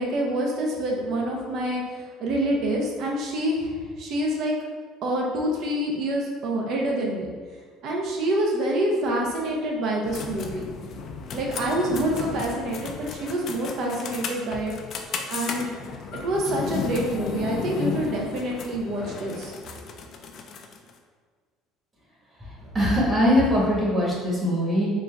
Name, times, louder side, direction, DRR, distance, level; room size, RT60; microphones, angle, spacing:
voice 1, 0.0-1.8 2.2-4.5 5.0-7.3 7.8-10.6 11.3-14.7 15.3-15.7 16.1-19.5, right 1 dB, 55° right, -1 dB, 0.8 m, -26 dB
sound 1, 10.0-20.9, left 6 dB, 45° left, 0.4 m, -34 dB
voice 2, 22.4-24.9, equal, 15° right, -6 dB, 1.4 m, -22 dB
4.3 x 2.6 x 3.4 m, 1.6 s
cardioid pair, 130°, 0 cm